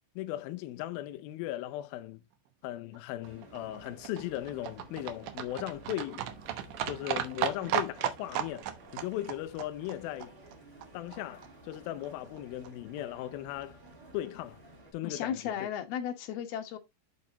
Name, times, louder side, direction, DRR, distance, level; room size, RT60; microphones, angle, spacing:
voice 1, 0.2-2.2 2.6-6.2 6.8-8.7 8.9-10.3 10.9-13.8 14.1-14.6 14.9-15.7, left 14 dB, 85° left, 2.1 m, -37 dB
Livestock farm animals working animals, 2.9-11.2 11.4-11.5 11.7-11.8 12.0-12.1 12.3-12.4 12.6-12.7 13.0-13.1 13.3-13.4 13.6-13.7, right 10 dB, 85° right, 1.7 m, -36 dB
sound 1, 3.2-14.9, right 1 dB, 30° right, 5.3 m, -54 dB
voice 2, 15.0-16.8, left 9 dB, 70° left, 3.1 m, -35 dB
8.3 x 7.6 x 3.0 m
omnidirectional pair, 5.0 m